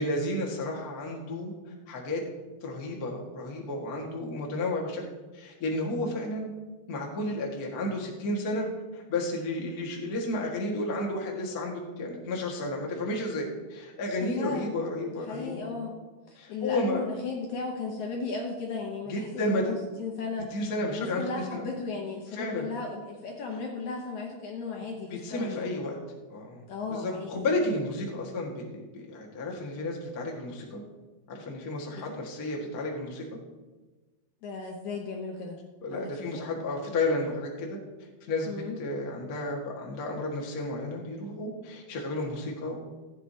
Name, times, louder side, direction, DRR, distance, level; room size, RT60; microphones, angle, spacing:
voice 1, 0.0-1.5 1.9-2.2 2.6-5.0 5.3-6.5 6.9-8.7 8.9-15.8 16.4-17.0 19.1-19.6 20.5-21.6 22.4-22.7 25.1-25.9 26.3-26.6 26.9-30.8 31.3-33.4 35.8-37.8 38.3-38.5 38.8-42.8, left 1 dB, 55° left, -1 dB, 1.0 m, -32 dB
voice 2, 14.2-14.8 15.2-16.0 16.3-20.5 20.9-25.8 26.7-27.5 32.0-32.2 34.4-35.6 35.9-36.4 38.5-38.8, left 4 dB, 70° left, -1 dB, 1.9 m, -36 dB
15.0 x 9.1 x 2.8 m, 1.2 s
omnidirectional pair, 4.6 m